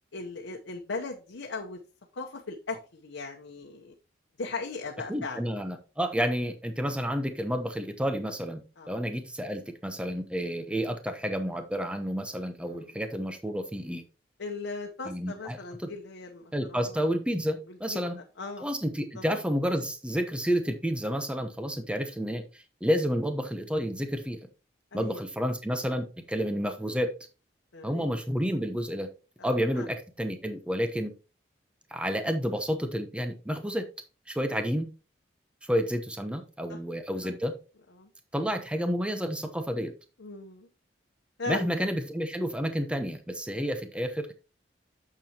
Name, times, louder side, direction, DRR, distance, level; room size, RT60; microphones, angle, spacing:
voice 1, 0.1-1.8 2.2-3.9 4.4-5.4 8.8-8.9 12.6-12.8 14.4-17.0 17.7-18.0 18.4-18.7 19.1-19.2 24.9-25.2 27.7-28.1 29.4-29.9 34.5-34.6 36.7-36.8 38.0-38.1 40.2-40.7 41.4-41.7, left 3 dB, 85° left, 1 dB, 0.9 m, -38 dB
voice 2, 5.1-14.0 15.1-15.9 16.5-18.2 18.6-24.4 24.9-27.1 27.8-29.1 29.4-31.1 31.9-33.9 34.3-34.9 35.6-37.5 38.3-39.9 41.5-44.3, equal, 5° right, 7 dB, 0.8 m, -30 dB
8.9 x 6.9 x 2.9 m, 0.33 s
head